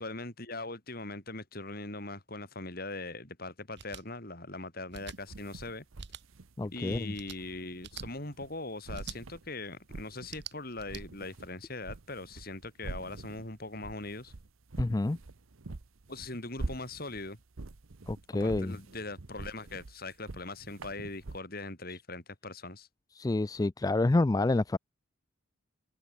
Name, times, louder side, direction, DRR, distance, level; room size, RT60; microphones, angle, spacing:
voice 1, 0.0-5.8 6.6-14.3 16.1-17.4 18.4-22.9, left 2 dB, 45° left, 4.4 m, -41 dB
sound 1, 3.7-4.0 4.9-5.2 6.0-6.2 7.1-7.4 7.8-8.1 8.9-9.2 10.2-11.0, right 8 dB, 55° right, 4.4 m, -45 dB
sound 2, 4.9-8.6 8.9-10.5 10.8-21.4, right 2 dB, 85° right, 1.0 m, -44 dB
voice 2, 6.6-7.1 14.8-15.2 18.1-18.8 23.2-24.8, left 2 dB, 20° left, 0.3 m, -28 dB
head